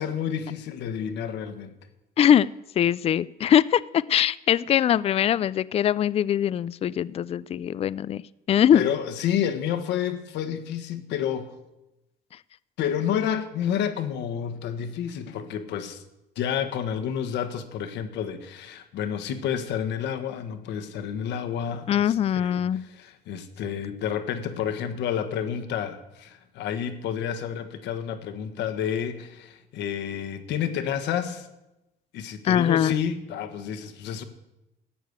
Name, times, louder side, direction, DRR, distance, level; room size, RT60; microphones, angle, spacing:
voice 1, 0.0-1.7 8.7-11.5 12.8-16.0 16.3-31.5 32.1-34.2, left 8 dB, 75° left, 9 dB, 1.5 m, -30 dB
voice 2, 2.2-2.5 2.8-8.2 8.5-8.8 21.9-22.8 32.4-33.0, left 10 dB, 35° left, 19 dB, 0.4 m, -22 dB
14.0 x 8.6 x 8.1 m, 0.94 s
cardioid pair, 120°, 18 cm